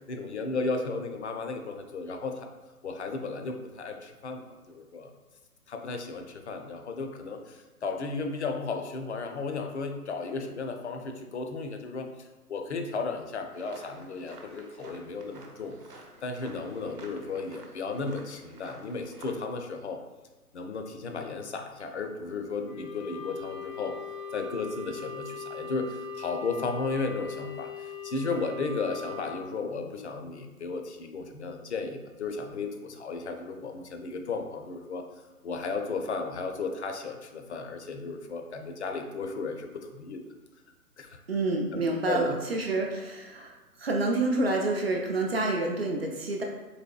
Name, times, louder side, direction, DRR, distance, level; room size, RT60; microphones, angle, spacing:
voice 1, 0.1-2.5 2.8-5.1 5.7-15.7 16.2-20.0 20.5-24.0 24.3-35.0 35.4-40.2 41.0-41.2 41.7-42.4, left 4 dB, 50° left, 5 dB, 0.5 m, -34 dB
sound 1, 13.5-19.4, right 3 dB, 80° right, 0.9 m, -51 dB
Wind instrument woodwind instrument, 22.6-29.3, left 5 dB, 90° left, 1.0 m, -40 dB
voice 2, 41.3-46.4, right 2 dB, 45° right, 1 dB, 0.4 m, -28 dB
4.1 x 3.0 x 2.3 m, 1.2 s
figure-of-eight pair, 140°, 46 cm